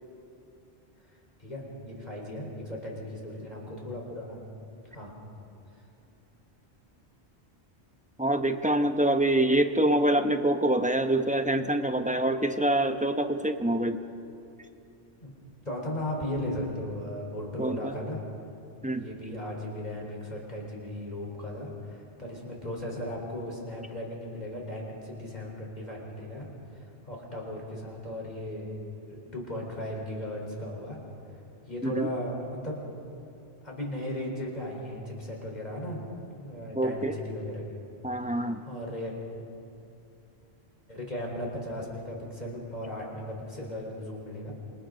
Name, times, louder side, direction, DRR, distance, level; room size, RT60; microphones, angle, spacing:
voice 1, 1.1-4.4 4.8-5.2 15.2-15.3 15.6-18.2 19.0-28.8 29.1-31.0 31.3-32.8 33.6-36.0 36.4-37.8 38.2-39.2 40.9-44.5, left 1 dB, 40° left, -2 dB, 4.5 m, -37 dB
voice 2, 8.2-14.0 17.6-17.9 18.8-19.0 31.8-32.1 36.7-37.2 38.0-38.6, right 1 dB, 10° right, 7 dB, 0.8 m, -25 dB
27.5 x 26.5 x 4.0 m, 2.7 s
omnidirectional pair, 1.1 m